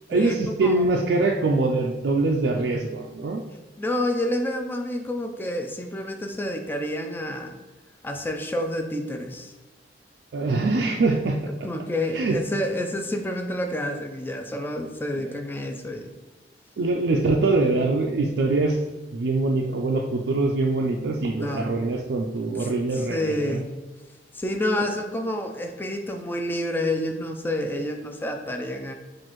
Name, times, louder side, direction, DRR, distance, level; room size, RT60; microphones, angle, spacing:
voice 1, 0.1-3.4 10.3-11.4 12.1-12.4 15.2-15.3 16.8-18.8 19.1-23.6, right 3 dB, 70° right, 0 dB, 0.4 m, -23 dB
voice 2, 3.8-7.6 8.0-9.5 11.6-16.1 21.4-21.7 22.6-23.7 24.3-28.9, left 1 dB, 10° left, 4 dB, 0.4 m, -29 dB
6.0 x 2.5 x 3.0 m, 1.2 s
head